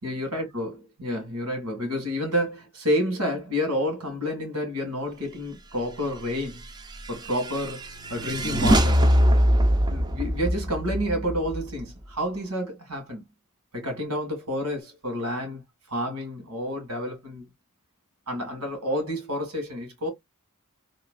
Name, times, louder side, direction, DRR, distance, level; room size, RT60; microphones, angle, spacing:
voice 1, 0.0-6.6 7.1-9.0 9.9-13.2 13.7-15.6 15.9-17.5 18.3-20.1, equal, 85° right, 1.7 m, -29 dB
sound 1, 6.6-12.2, equal, 20° right, 0.4 m, -23 dB
3.1 x 2.8 x 2.2 m
head